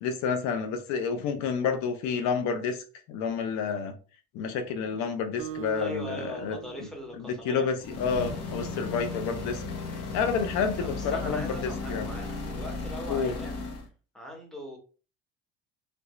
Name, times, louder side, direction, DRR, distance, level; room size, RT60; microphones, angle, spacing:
voice 1, 0.0-3.9 4.3-6.6 7.2-9.6 10.1-12.1 13.1-13.3, left 6 dB, 70° left, 0.7 m, -29 dB
Acoustic guitar, 5.4-8.2, right 10 dB, 45° right, 0.5 m, -42 dB
voice 2, 5.7-7.7 10.8-13.6 14.1-14.8, left 1 dB, ahead, 1.1 m, -41 dB
sound 1, 7.8-13.9, left 3 dB, 55° left, 1.1 m, -35 dB
3.3 x 2.5 x 3.0 m
cardioid pair, 125°, 29 cm